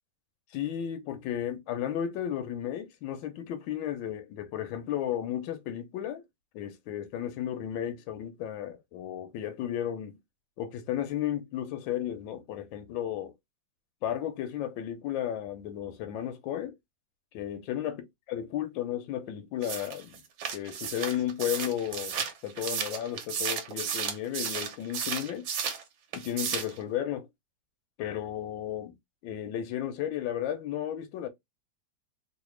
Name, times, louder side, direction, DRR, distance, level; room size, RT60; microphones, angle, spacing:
voice 1, 0.5-6.2 6.5-10.1 10.6-13.3 14.0-16.8 17.3-20.2 20.5-22.2 22.4-25.5 26.1-27.3 28.0-29.0 29.2-31.3, left 10 dB, 85° left, 1.5 m, -34 dB
sound 1, 19.6-25.8 26.1-26.8, right 7 dB, 80° right, 1.5 m, -33 dB
3.9 x 2.1 x 3.1 m
omnidirectional pair, 2.0 m